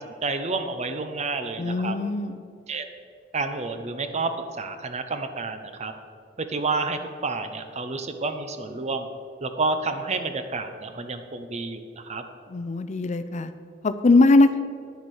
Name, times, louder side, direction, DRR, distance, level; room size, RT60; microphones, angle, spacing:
voice 1, 0.2-1.9 2.7-2.9 3.3-4.3 4.6-5.9 6.4-9.1 9.4-12.2, right 3 dB, 35° right, 8 dB, 0.7 m, -29 dB
voice 2, 1.6-2.4 12.5-13.5 13.8-14.6, left 2 dB, 40° left, 11 dB, 0.4 m, -20 dB
10.0 x 7.0 x 6.4 m, 2.3 s
head